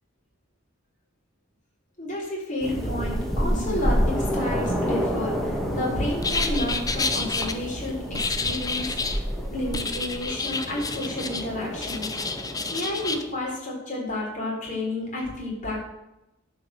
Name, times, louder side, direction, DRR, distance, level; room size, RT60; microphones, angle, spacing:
voice 1, 2.0-9.2 9.5-12.1 12.7-15.8, left 1 dB, 40° left, -2 dB, 4.2 m, -31 dB
sound 1, 2.6-13.4, equal, ahead, 1.8 m, -29 dB
sound 2, 6.2-7.5 8.1-9.2 9.7-11.5 11.8-13.2, left 4 dB, 20° left, 0.8 m, -29 dB
11.0 x 5.5 x 7.6 m, 0.92 s
head